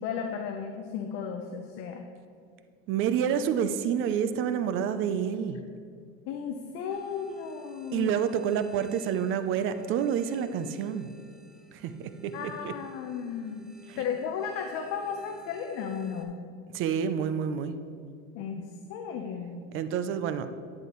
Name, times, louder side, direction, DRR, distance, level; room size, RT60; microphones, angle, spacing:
voice 1, 0.0-2.0 6.3-8.1 12.3-13.7 14.0-16.4 18.3-19.7, left 7 dB, 55° left, 4 dB, 0.8 m, -34 dB
voice 2, 2.9-5.6 7.9-11.1 11.7-12.7 13.9-14.0 16.7-17.7 19.7-20.5, right 8 dB, 45° right, 11 dB, 0.5 m, -28 dB
sound 1, 6.9-16.2, right 3 dB, ahead, 0.7 m, -54 dB
11.0 x 9.7 x 3.1 m, 2.2 s
cardioid pair, 150°, 29 cm